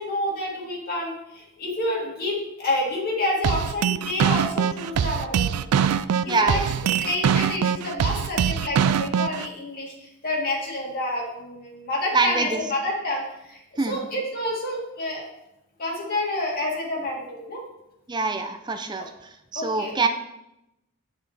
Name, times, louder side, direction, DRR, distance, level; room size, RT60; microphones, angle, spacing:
voice 1, 0.0-5.5 5.7-5.9 6.2-6.7 7.0-9.9 10.2-13.2 13.5-15.3 15.8-17.6 19.6-20.1, left 1 dB, 40° left, -2 dB, 2.0 m, -28 dB
sound 1, 3.4-9.5, right 8 dB, 85° right, 0.4 m, -23 dB
voice 2, 6.3-6.7 12.1-12.6 13.8-14.0 18.1-19.0 19.5-20.1, right 3 dB, 20° right, 5 dB, 0.6 m, -24 dB
8.7 x 5.9 x 4.2 m, 0.88 s
head